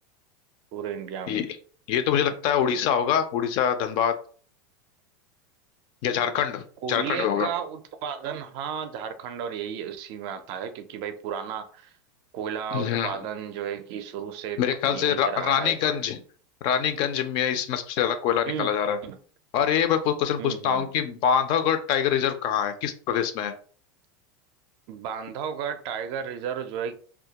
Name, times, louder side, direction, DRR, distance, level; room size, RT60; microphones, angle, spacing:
voice 1, 0.7-1.5 6.8-11.9 12.3-14.6 14.9-15.8 18.4-18.7 19.0-19.2 20.4-20.9 24.9-26.9, right 8 dB, 50° right, 0.4 m, -33 dB
voice 2, 1.9-4.2 6.0-6.6 6.9-7.5 12.7-13.2 14.6-16.2 16.6-19.0 19.5-23.5, left 8 dB, 50° left, 0.4 m, -24 dB
2.2 x 2.0 x 2.8 m
supercardioid pair, 130°, 11 cm